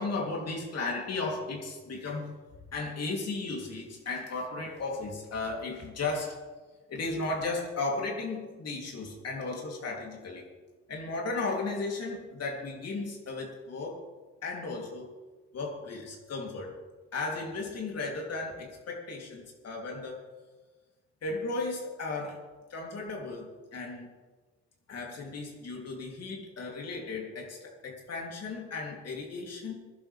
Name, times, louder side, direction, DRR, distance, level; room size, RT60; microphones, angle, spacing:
voice 1, 0.0-2.4 2.7-6.4 6.9-10.5 10.9-14.0 14.4-15.1 15.5-16.8 17.1-20.2 21.2-22.4 22.7-24.1 24.9-29.7, left 3 dB, 55° left, -1 dB, 3.6 m, -35 dB
21.0 x 11.5 x 3.7 m, 1.3 s
cardioid pair, 90°, 30 cm